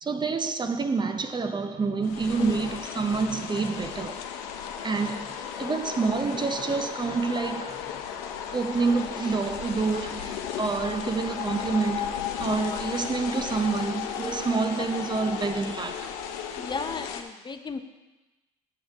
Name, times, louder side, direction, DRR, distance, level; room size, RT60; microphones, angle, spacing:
voice 1, 0.0-4.2 4.8-7.8 8.5-16.1, right 4 dB, 25° right, 0.6 m, -28 dB
sound 1, 2.0-17.2, left 8 dB, 80° left, 0.7 m, -35 dB
voice 2, 16.6-17.8, left 4 dB, 25° left, 0.6 m, -34 dB
7.5 x 6.2 x 4.8 m
hypercardioid pair, 70°, 18 cm